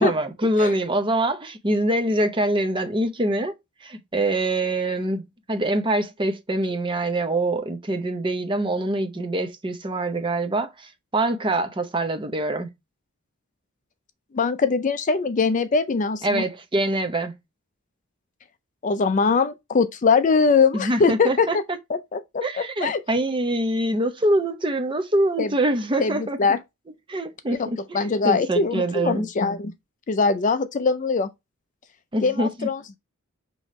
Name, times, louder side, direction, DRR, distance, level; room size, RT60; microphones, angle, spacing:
voice 1, 0.0-3.5 3.8-5.2 5.5-12.7 16.2-17.3 20.7-21.6 22.4-26.4 27.1-29.3 32.1-32.7, right 1 dB, 25° right, 0.7 m, -24 dB
voice 2, 14.3-16.4 18.8-21.6 21.9-23.0 25.4-25.5 26.0-26.6 27.5-27.7 27.9-29.7 30.1-31.3 32.2-33.0, left 4 dB, 35° left, 0.4 m, -22 dB
5.6 x 3.0 x 3.1 m
head